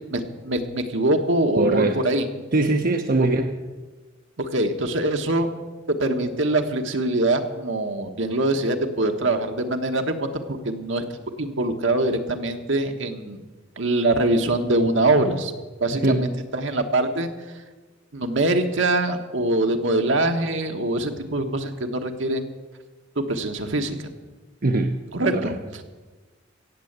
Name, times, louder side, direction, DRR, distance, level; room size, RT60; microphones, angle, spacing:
voice 1, 0.0-2.2 3.2-3.3 4.4-5.5 5.9-11.0 11.4-13.4 13.8-15.5 15.8-17.3 18.1-22.5 23.2-24.0 25.1-25.5, right 2 dB, 70° right, 6 dB, 1.3 m, -23 dB
voice 2, 1.6-2.0 2.5-3.5 15.9-16.3 24.6-24.9 25.3-25.5, right 2 dB, 45° right, 5 dB, 0.8 m, -21 dB
16.0 x 7.7 x 8.0 m, 1.3 s
head